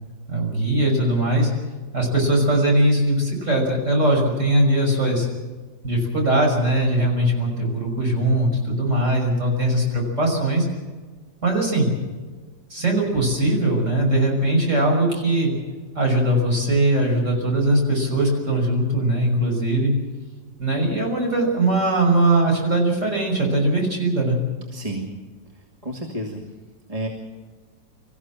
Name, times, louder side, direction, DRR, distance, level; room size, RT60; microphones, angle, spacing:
voice 1, 0.3-1.5 1.9-5.3 5.8-10.7 11.4-11.9 12.7-15.5 15.9-19.9 20.6-24.4, right 1 dB, 40° right, 0 dB, 6.4 m, -20 dB
voice 2, 24.7-25.1 25.8-26.4 26.9-27.1, right 1 dB, 20° right, -1 dB, 2.4 m, -30 dB
25.5 x 15.5 x 7.5 m, 1.4 s
omnidirectional pair, 2.0 m